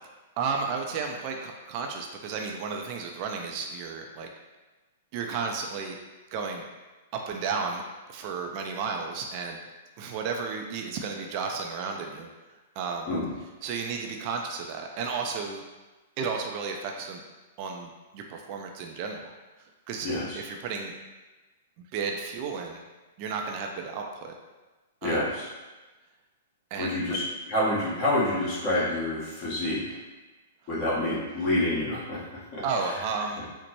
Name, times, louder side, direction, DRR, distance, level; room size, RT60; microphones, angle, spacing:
voice 1, 0.4-4.3 5.1-6.0 6.3-6.7 7.1-7.8 8.1-9.6 10.0-12.3 12.8-13.1 13.6-15.6 16.2-17.2 17.6-19.3 19.6-20.1 20.4-20.9 21.9-22.8 23.2-24.4 25.0-25.2 26.7-27.0 32.6-33.4, right 5 dB, 45° right, 2 dB, 0.4 m, -33 dB
voice 2, 20.0-20.4 25.0-25.5 26.8-27.2 27.5-30.0 30.7-32.2 32.5-32.9, left 1 dB, 35° left, -7 dB, 1.4 m, -28 dB
4.1 x 2.1 x 3.0 m, 1.2 s
hypercardioid pair, 110°, 0 cm